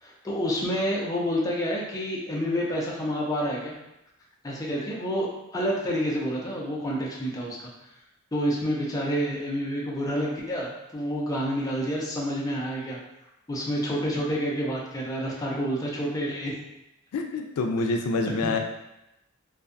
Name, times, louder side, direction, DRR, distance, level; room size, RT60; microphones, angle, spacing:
voice 1, 0.0-3.8 4.4-7.7 8.3-13.0 13.5-16.5 18.4-18.5, equal, 15° left, -4 dB, 0.4 m, -28 dB
voice 2, 17.1-18.6, left 3 dB, 85° left, 4 dB, 0.3 m, -26 dB
2.6 x 2.2 x 2.5 m, 0.89 s
head